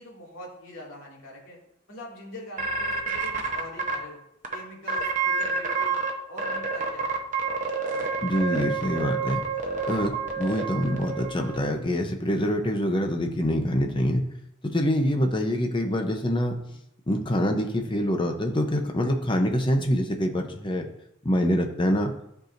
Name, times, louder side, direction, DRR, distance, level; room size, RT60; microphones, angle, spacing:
voice 1, 0.0-1.6 1.9-4.2 4.5-6.0 6.3-7.2 7.9-8.1, left 1 dB, 85° left, -4 dB, 2.3 m, -43 dB
sound 1, 2.6-4.0 4.4-4.5 4.9-6.1 6.4-11.6, right 4 dB, 40° right, 0.9 m, -28 dB
voice 2, 8.2-9.4 9.9-14.2 14.7-16.6 17.1-20.9 21.2-22.1, equal, 25° left, 4 dB, 0.7 m, -25 dB
13.0 x 4.7 x 2.6 m, 0.80 s
head